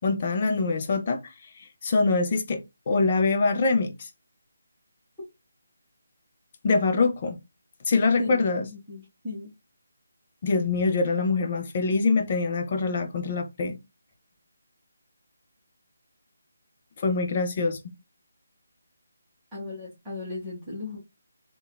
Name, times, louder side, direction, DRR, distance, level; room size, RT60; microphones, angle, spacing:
voice 1, 0.0-4.1 6.6-7.4 7.9-8.7 10.4-13.8 17.0-17.8, left 4 dB, 35° left, 0.5 m, -24 dB
voice 2, 8.2-9.5 19.5-21.0, left 2 dB, 5° right, 1.0 m, -36 dB
3.5 x 2.3 x 2.2 m
figure-of-eight pair, 170°, 0 cm